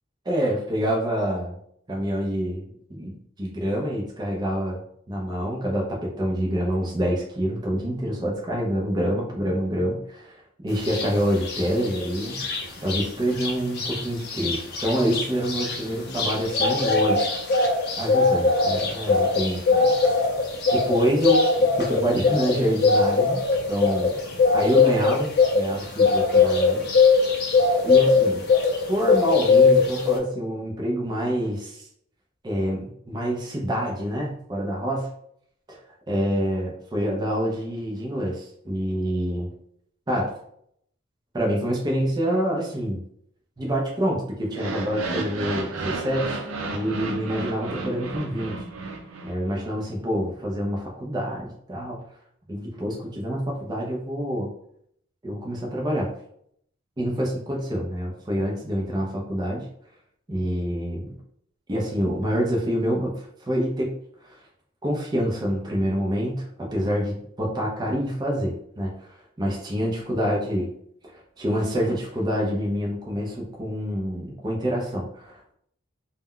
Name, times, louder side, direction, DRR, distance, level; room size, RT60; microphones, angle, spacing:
voice 1, 0.3-1.5 1.9-2.6 2.9-4.8 5.1-12.4 12.8-17.2 18.0-19.9 20.7-23.4 23.7-24.2 24.5-26.8 27.8-28.5 28.9-31.8 32.4-35.1 35.7-35.8 36.1-39.5 40.1-40.3 41.3-43.0 43.6-46.4 46.7-48.5 49.2-52.0 52.5-54.5 55.2-56.1 57.0-59.7 60.3-61.2 61.7-63.9 64.8-68.9 69.4-70.7 71.1-75.5, equal, 20° right, -2 dB, 0.4 m, -26 dB
sound 1, 10.8-11.1 11.4-13.0 13.4-13.5 13.8-28.8 29.1-30.2, left 4 dB, 50° left, 0.5 m, -20 dB
sound 2, 44.5-49.6, right 3 dB, 80° right, 0.5 m, -32 dB
2.2 x 2.1 x 3.6 m, 0.70 s
head